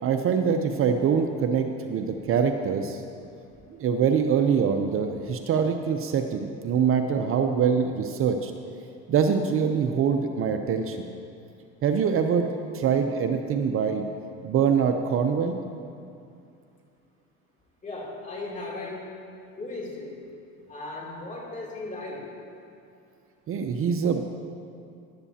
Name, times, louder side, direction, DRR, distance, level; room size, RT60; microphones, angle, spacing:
voice 1, 0.0-3.0 3.7-8.5 9.1-11.0 11.8-12.5 12.7-14.1 14.4-15.6 23.5-24.2, right 6 dB, 45° right, 6 dB, 0.7 m, -24 dB
voice 2, 17.8-19.1 19.6-20.3 20.7-22.3, left 2 dB, 25° left, -3 dB, 2.9 m, -36 dB
14.5 x 11.0 x 2.8 m, 2.5 s
supercardioid pair, 105°, 31 cm